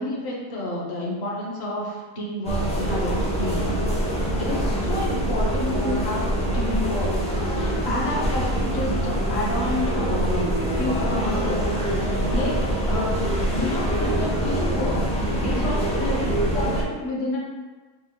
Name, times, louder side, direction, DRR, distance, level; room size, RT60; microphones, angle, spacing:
voice 1, 0.0-7.2 7.5-15.1 15.4-17.5, left 1 dB, 50° left, -3 dB, 1.0 m, -30 dB
sound 1, 2.4-16.8, right 1 dB, 10° left, 0.3 m, -24 dB
5.5 x 2.0 x 3.7 m, 1.3 s
omnidirectional pair, 1.5 m